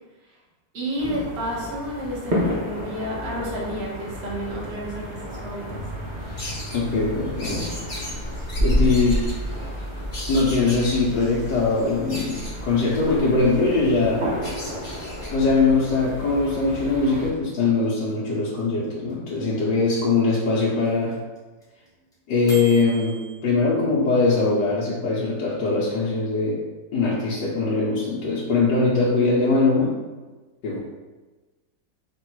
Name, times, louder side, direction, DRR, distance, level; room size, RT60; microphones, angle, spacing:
voice 1, 0.7-5.9 8.5-8.6, equal, 40° right, -7 dB, 1.3 m, -31 dB
sound 1, 1.0-17.3, equal, 85° right, 0.4 m, -33 dB
sound 2, 6.2-15.3, equal, 35° left, 1.0 m, -31 dB
voice 2, 6.7-7.7 8.6-9.2 10.3-14.2 15.3-21.1 22.3-23.1 23.4-26.6 26.9-29.9 30.6-30.8, left 3 dB, 75° left, -7 dB, 1.4 m, -21 dB
sound 3, 15.6-23.4, right 4 dB, 5° left, 0.9 m, -40 dB
3.7 x 2.5 x 4.5 m, 1.2 s
omnidirectional pair, 1.9 m